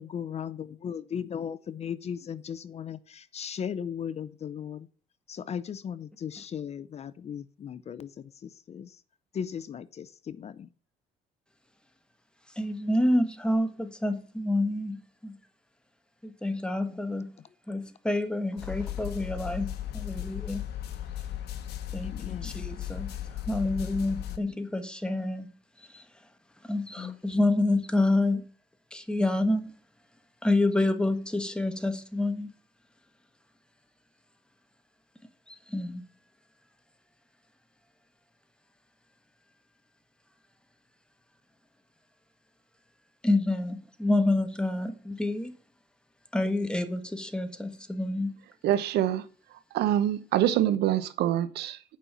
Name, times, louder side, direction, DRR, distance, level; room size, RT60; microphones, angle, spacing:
voice 1, 0.0-4.9 5.3-9.0 9.3-10.7 16.9-17.0 22.0-22.5 24.3-24.7 27.0-27.4, left 8 dB, 40° left, 0.6 m, -37 dB
voice 2, 12.6-15.4 16.2-17.3 17.7-20.6 21.9-23.1 23.5-25.5 25.9-26.0 26.7-28.4 28.9-29.7 30.4-32.5 35.7-36.0 43.2-45.5 46.3-48.4, left 2 dB, 5° left, 1.4 m, -28 dB
sound 1, 18.6-24.4, left 11 dB, 75° left, 1.3 m, -36 dB
voice 3, 48.6-49.2 49.7-52.0, right 12 dB, 75° right, 1.0 m, -25 dB
8.5 x 5.5 x 7.3 m
cardioid pair, 110°, 17 cm